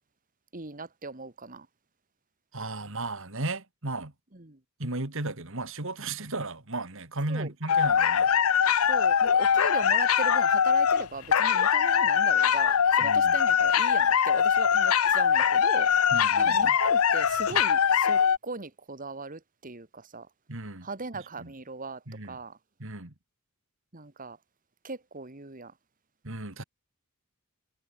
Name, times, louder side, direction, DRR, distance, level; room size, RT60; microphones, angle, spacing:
voice 1, 0.5-1.7 4.3-4.6 7.3-7.5 8.9-15.9 16.4-20.3 20.8-22.0 22.3-22.6 23.9-24.4 24.8-25.7, right 3 dB, 40° right, 1.8 m, -39 dB
voice 2, 2.5-4.1 4.8-8.3 13.0-13.4 16.1-16.8 17.5-17.6 20.5-20.9 21.4-21.5 22.1-22.4 22.8-23.1 26.2-26.6, right 2 dB, 65° right, 2.9 m, -35 dB
sound 1, 7.7-18.4, left 7 dB, 75° left, 0.7 m, -22 dB
head